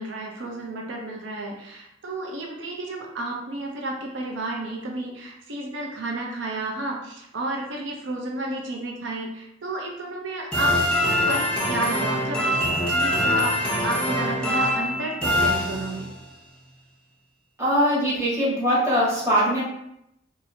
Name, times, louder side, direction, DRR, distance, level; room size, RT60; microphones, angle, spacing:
voice 1, 0.0-16.1, right 2 dB, 90° right, 0 dB, 0.6 m, -32 dB
sound 1, 10.5-16.2, left 1 dB, 5° left, 0.6 m, -24 dB
voice 2, 17.6-19.6, equal, 15° right, -8 dB, 1.4 m, -21 dB
2.7 x 2.6 x 4.2 m, 0.79 s
head